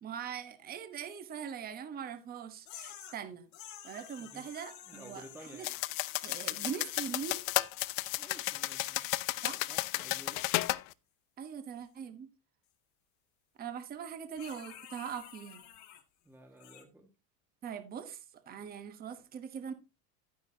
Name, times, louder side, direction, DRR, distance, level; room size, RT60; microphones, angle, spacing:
voice 1, 0.0-3.5 3.8-5.7 6.2-7.4 9.4-9.6 11.4-12.3 13.6-15.6 17.6-18.2 18.5-19.7, right 7 dB, 25° right, 1.1 m, -42 dB
sound 1, 2.7-3.2 3.5-9.1 14.4-16.0 16.6-16.8, left 10 dB, 45° left, 2.0 m, -52 dB
voice 2, 4.9-5.8 8.1-9.0 9.5-10.4 16.2-17.1, right 1 dB, 5° right, 1.4 m, -53 dB
sound 2, 5.6-10.8, left 20 dB, 85° left, 0.7 m, -33 dB
12.0 x 9.6 x 2.8 m
cardioid pair, 170°, 39 cm